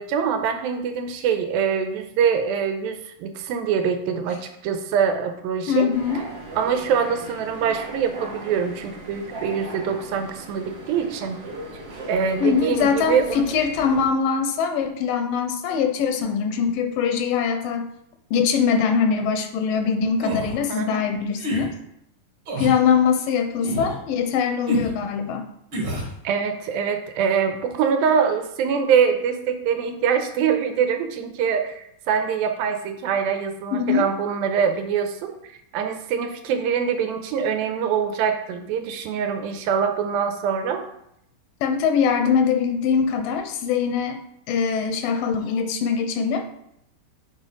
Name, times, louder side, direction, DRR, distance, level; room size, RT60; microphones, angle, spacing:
voice 1, 0.0-5.9 6.6-11.4 12.1-13.4 20.7-21.1 26.2-40.8, right 7 dB, 85° right, 6 dB, 2.5 m, -24 dB
voice 2, 5.7-6.2 12.4-17.9 18.3-21.7 22.6-25.5 33.7-34.1 41.6-44.2 44.5-46.5, left 6 dB, 80° left, 6 dB, 2.2 m, -22 dB
sound 1, 5.9-14.0, right 2 dB, 65° right, 1.1 m, -37 dB
sound 2, 20.2-20.6 21.3-21.7 22.5-22.8 23.6-24.0 24.7-24.9 25.7-26.1, right 1 dB, 40° right, 2.3 m, -28 dB
7.5 x 4.5 x 4.8 m, 0.77 s
omnidirectional pair, 4.2 m